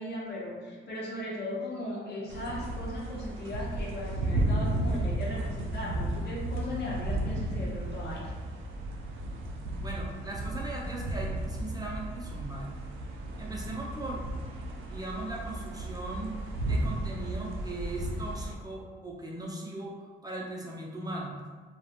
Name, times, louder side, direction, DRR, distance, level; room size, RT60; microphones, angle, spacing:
voice 1, 0.0-8.3, left 1 dB, 55° left, -4 dB, 0.7 m, -37 dB
sound 1, 2.3-18.5, right 1 dB, 80° right, 0.4 m, -34 dB
voice 2, 9.8-12.7 13.4-14.2 14.9-16.4 16.7-21.3, right 2 dB, 20° right, -3 dB, 0.5 m, -39 dB
2.3 x 2.1 x 2.7 m, 1.4 s
cardioid pair, 90°, 20 cm